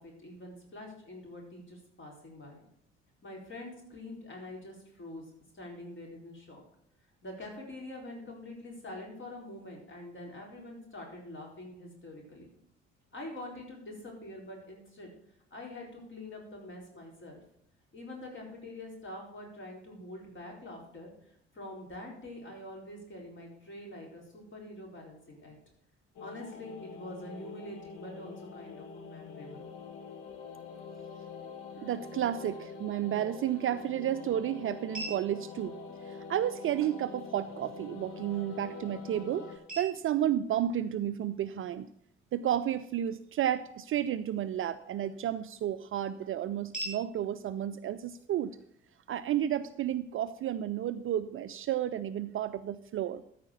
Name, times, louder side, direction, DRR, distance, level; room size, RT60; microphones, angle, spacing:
voice 1, 0.0-2.6 3.2-6.6 7.2-12.5 13.1-15.1 15.5-17.4 17.9-25.6 26.2-29.7, left 1 dB, 35° left, -1 dB, 4.3 m, -45 dB
sound 1, 26.2-39.6, left 5 dB, 55° left, 1.6 m, -45 dB
voice 2, 31.8-35.8 36.0-41.9 42.3-48.5 49.1-53.2, right 11 dB, 40° right, 13 dB, 0.5 m, -32 dB
sound 2, 33.2-49.2, right 1 dB, ahead, 5.8 m, -50 dB
13.5 x 5.1 x 6.8 m, 0.70 s
figure-of-eight pair, 50°, 34 cm